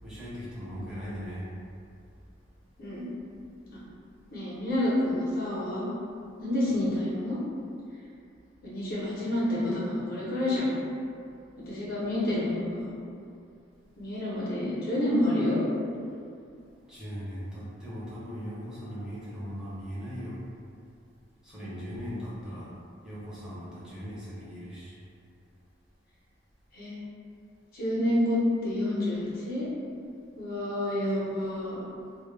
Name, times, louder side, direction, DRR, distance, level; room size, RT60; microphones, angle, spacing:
voice 1, 0.0-1.5 16.9-20.4 21.4-22.7 23.0-24.9, equal, 5° right, -10 dB, 0.6 m, -39 dB
voice 2, 4.3-5.9 6.4-7.4 8.6-10.7 11.6-12.9 14.0-15.6 26.7-27.0 27.7-29.7 30.3-31.8, left 1 dB, 45° left, -7 dB, 0.6 m, -28 dB
2.1 x 2.0 x 3.1 m, 2.4 s
head